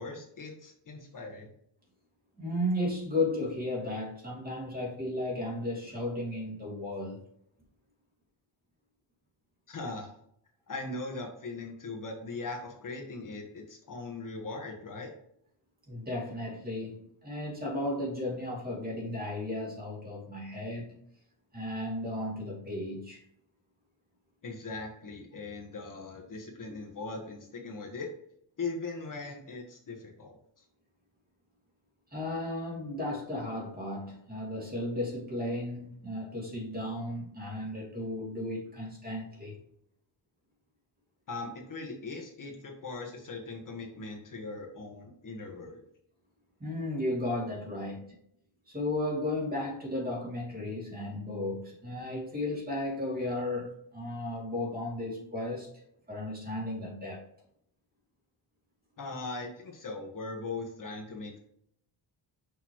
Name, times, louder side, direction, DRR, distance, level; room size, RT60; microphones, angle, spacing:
voice 1, 0.0-1.5 9.7-10.1 10.7-15.1 24.4-28.1 28.6-30.6 41.3-45.8 59.0-61.4, left 3 dB, 45° left, 1.4 m, -40 dB
voice 2, 2.4-7.2 15.9-21.0 21.5-23.2 32.1-39.6 46.6-48.2 48.7-55.7 56.1-57.2, left 1 dB, 20° right, 2.7 m, -34 dB
6.4 x 5.5 x 3.0 m
wide cardioid pair, 140°, 44 cm